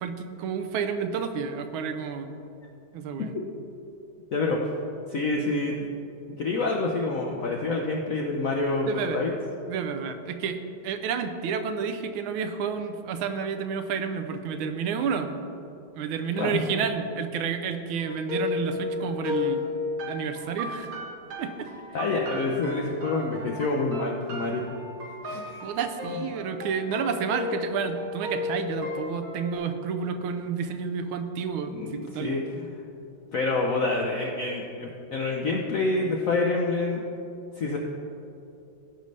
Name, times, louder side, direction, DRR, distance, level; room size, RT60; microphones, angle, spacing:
voice 1, 0.0-2.4 2.9-3.4 8.8-9.2 9.7-15.3 15.9-19.6 20.1-20.9 21.4-21.7 25.6-32.3, right 6 dB, 85° right, 8 dB, 1.4 m, -30 dB
voice 2, 4.3-5.9 6.4-9.3 16.4-16.6 21.9-24.6 25.2-25.6 31.7-32.4 32.7-32.8 33.3-37.0 37.6-37.8, left 3 dB, 70° left, 0 dB, 0.7 m, -27 dB
sound 1, 18.0-29.5, left 3 dB, 50° right, 1.4 m, -34 dB
15.5 x 5.4 x 3.2 m, 2.8 s
omnidirectional pair, 2.2 m